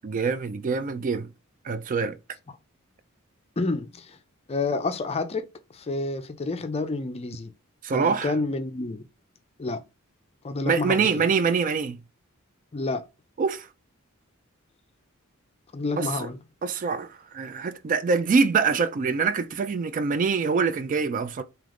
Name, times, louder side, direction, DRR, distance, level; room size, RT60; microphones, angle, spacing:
voice 1, 0.0-1.3 1.6-2.2 7.8-8.4 10.7-12.0 13.4-13.7 16.0-16.3 16.6-21.4, right 5 dB, 40° right, 0.3 m, -25 dB
voice 2, 3.6-4.2 4.5-5.4 5.7-7.5 7.9-9.0 9.6-9.8 10.4-11.3 12.7-13.0 15.7-16.4, left 3 dB, 30° left, 0.5 m, -29 dB
3.5 x 2.9 x 3.7 m
head